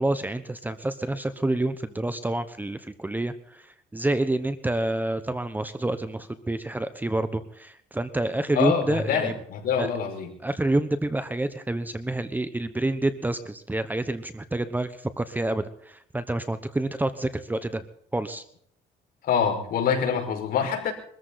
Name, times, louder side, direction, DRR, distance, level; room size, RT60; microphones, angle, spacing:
voice 1, 0.0-9.4 9.8-9.9 10.4-17.8 18.1-18.4, right 2 dB, 10° right, 11 dB, 1.1 m, -28 dB
voice 2, 8.5-10.3 19.3-20.9, left 7 dB, 60° left, 2 dB, 5.4 m, -25 dB
23.5 x 14.5 x 4.1 m, 0.65 s
cardioid pair, 110°, 17 cm